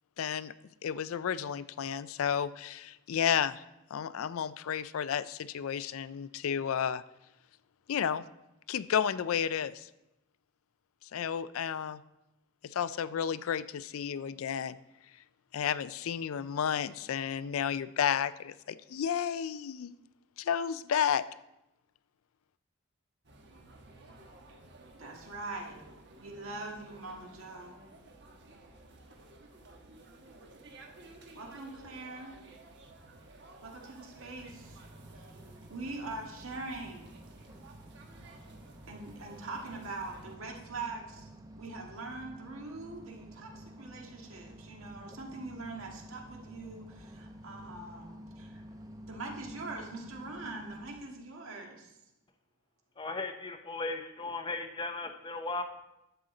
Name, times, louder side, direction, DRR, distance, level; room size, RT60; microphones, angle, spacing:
voice 1, 0.2-0.5 0.8-3.6 3.9-7.0 7.9-8.2 8.7-9.9 11.1-12.0 12.6-14.8 15.5-20.0 20.4-21.3, left 8 dB, 75° left, 16 dB, 0.4 m, -32 dB
sound 1, 23.2-40.4, right 2 dB, 55° right, 1.2 m, -54 dB
voice 2, 24.9-25.8 26.1-27.8 31.3-32.4 33.6-34.8 35.1-35.3 35.7-37.1 38.9-41.3 41.6-48.6 49.1-51.9, right 3 dB, 75° right, 1 dB, 1.8 m, -43 dB
sound 2, 34.4-51.0, equal, 15° right, 0.7 m, -50 dB
voice 3, 53.0-55.6, left 3 dB, 20° left, 7 dB, 0.6 m, -36 dB
11.0 x 7.8 x 3.8 m, 0.92 s
head